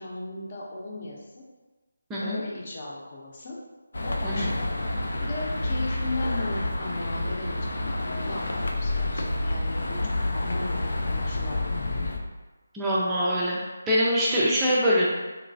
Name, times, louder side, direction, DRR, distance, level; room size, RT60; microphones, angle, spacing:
voice 1, 0.0-1.4 2.2-3.6 4.0-4.7 5.2-8.0 8.3-12.0, left 2 dB, 40° left, -3 dB, 0.7 m, -36 dB
sound 1, 3.9-12.2, left 2 dB, 70° left, 0.4 m, -29 dB
voice 2, 12.7-13.6 13.9-15.1, equal, 10° right, -7 dB, 0.4 m, -23 dB
3.1 x 3.0 x 2.7 m, 1.2 s
figure-of-eight pair, 165°, 0 cm